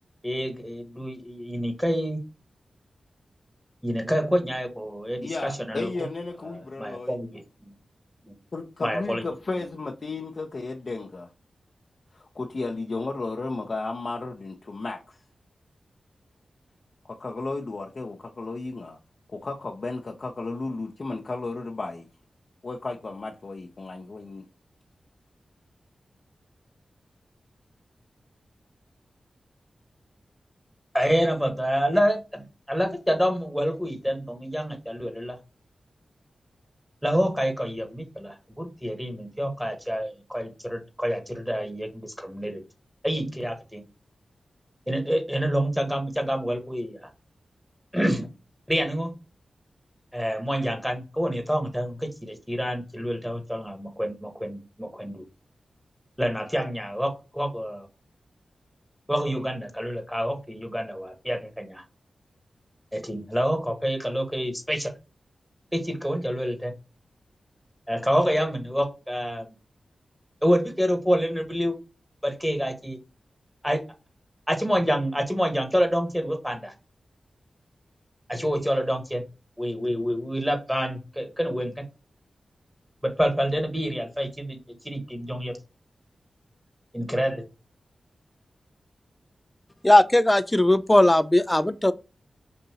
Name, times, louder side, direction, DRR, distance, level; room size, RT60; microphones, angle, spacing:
voice 1, 0.2-2.2 3.8-5.9 6.5-7.4 8.2-8.3 8.8-9.2 30.9-35.4 37.0-42.6 43.0-43.8 44.9-47.0 47.9-48.3 48.7-49.1 50.1-55.2 56.2-57.9 59.1-61.8 62.9-64.9 65.7-66.7 67.9-69.5 70.4-71.7 72.2-73.0 73.6-73.8 74.5-76.7 78.3-79.3 79.6-81.8 83.0-84.6 84.8-85.6 86.9-87.5, equal, 5° right, 1.3 m, -27 dB
voice 2, 5.2-7.2 8.5-11.3 12.1-15.2 17.1-19.0 19.4-22.1 22.6-24.4, left 3 dB, 60° left, 0.7 m, -33 dB
voice 3, 89.8-91.9, left 1 dB, 15° left, 0.4 m, -18 dB
5.4 x 2.6 x 2.8 m
cardioid pair, 45°, 0 cm